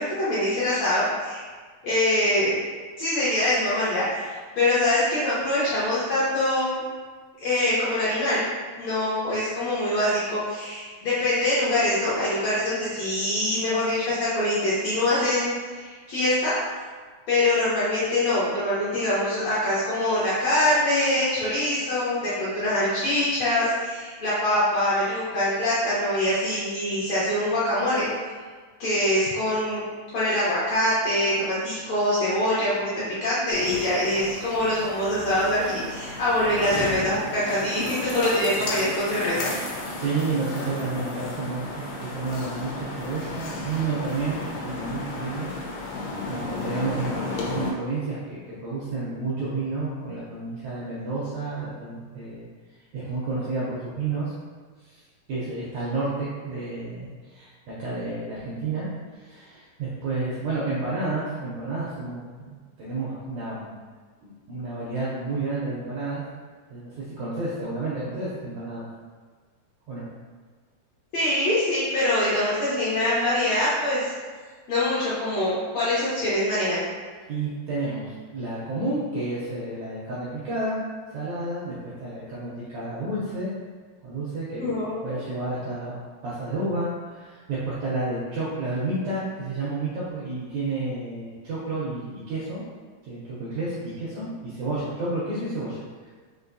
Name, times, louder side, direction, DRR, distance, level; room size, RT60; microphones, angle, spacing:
voice 1, 0.0-1.4 1.8-2.5 3.0-6.8 7.4-8.5 8.8-16.5 17.3-28.1 28.8-29.8 30.1-39.5 71.1-74.1 74.7-76.8 84.6-85.2, left 1 dB, 70° left, -11 dB, 1.7 m, -24 dB
sound 1, 33.5-47.7, left 3 dB, 85° left, 2.4 m, -33 dB
voice 2, 40.0-45.5 46.3-52.5 52.9-54.3 54.8-55.0 55.3-63.7 64.2-66.2 66.7-68.9 69.9-70.1 77.3-80.8 81.1-83.5 84.0-84.7 85.0-92.6 93.0-96.1, right 3 dB, 80° right, -8 dB, 1.6 m, -31 dB
5.4 x 2.6 x 2.6 m, 1.5 s
omnidirectional pair, 4.0 m